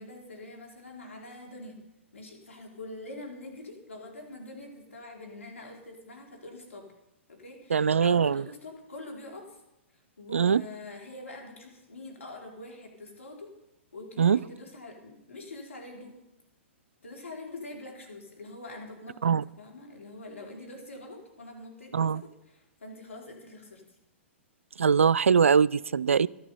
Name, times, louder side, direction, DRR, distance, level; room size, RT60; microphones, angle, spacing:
voice 1, 0.0-1.8 2.1-6.9 7.3-9.6 10.2-13.5 13.9-16.2 17.0-19.2 19.4-23.8, left 2 dB, 85° left, 0 dB, 4.1 m, -44 dB
voice 2, 7.7-8.4 10.3-10.6 14.2-14.4 19.2-19.4 21.9-22.2 24.8-26.3, right 6 dB, 85° right, 20 dB, 0.4 m, -22 dB
12.5 x 12.0 x 5.6 m, 0.94 s
hypercardioid pair, 120°, 7 cm